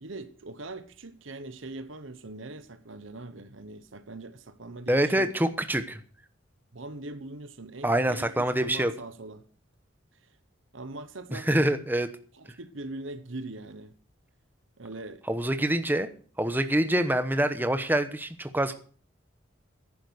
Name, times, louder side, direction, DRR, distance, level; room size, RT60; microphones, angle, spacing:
voice 1, 0.0-5.3 6.7-8.3 8.6-9.4 10.1-10.3 10.7-11.7 12.3-13.9 14.8-15.2, right 2 dB, 75° right, 1.1 m, -41 dB
voice 2, 4.9-6.0 7.8-8.9 11.3-12.1 15.3-16.1 16.4-18.7, right 1 dB, 10° right, 1.0 m, -25 dB
11.0 x 10.0 x 6.4 m
head